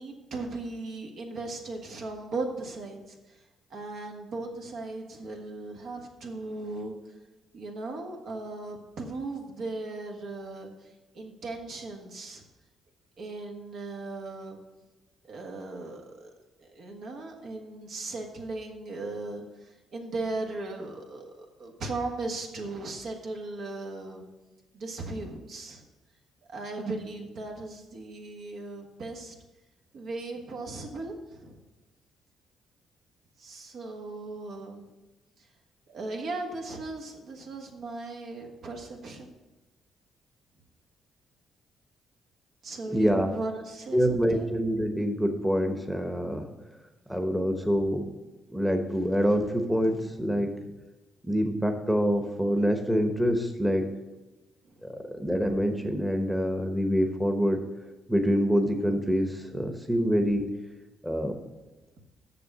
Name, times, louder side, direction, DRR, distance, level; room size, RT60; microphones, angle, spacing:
voice 1, 0.0-3.2 3.7-6.9 7.5-10.9 11.1-12.4 13.2-14.6 15.3-16.3 16.7-24.2 24.7-25.8 26.5-29.3 29.9-31.6 33.4-34.9 35.9-39.4 42.6-44.5 54.6-54.7, right 2 dB, 70° right, 1 dB, 1.6 m, -37 dB
voice 2, 42.9-43.3 43.9-46.5 47.1-48.1 48.5-50.7 51.2-53.8 55.1-57.6 58.1-60.4 61.0-61.3, equal, 5° right, 4 dB, 1.0 m, -26 dB
6.8 x 6.5 x 6.6 m, 1.1 s
cardioid pair, 90°, 0 cm